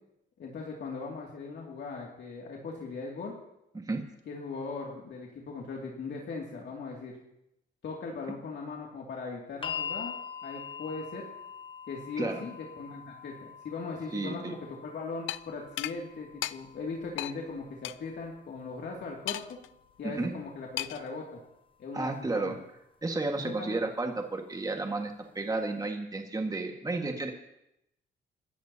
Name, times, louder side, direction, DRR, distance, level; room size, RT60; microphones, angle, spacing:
voice 1, 0.4-3.3 4.3-7.2 7.8-10.2 10.4-11.2 11.9-19.4 20.0-21.4 21.8-22.5 23.6-23.8, left 4 dB, 65° left, -2 dB, 2.5 m, -39 dB
sound 1, 9.6-21.7 22.8-22.9, left 7 dB, 25° left, 1.1 m, -45 dB
voice 2, 14.1-14.5 20.0-20.3 21.9-22.6 23.0-27.3, right 3 dB, 20° right, 3 dB, 1.7 m, -32 dB
sound 2, 15.3-15.4 15.8-16.0 16.4-16.6 17.2-17.3 17.8-18.0 19.3-19.7 20.8-21.1, left 15 dB, 80° left, 0.5 m, -34 dB
26.5 x 13.5 x 2.9 m, 0.84 s
cardioid pair, 90°, 20 cm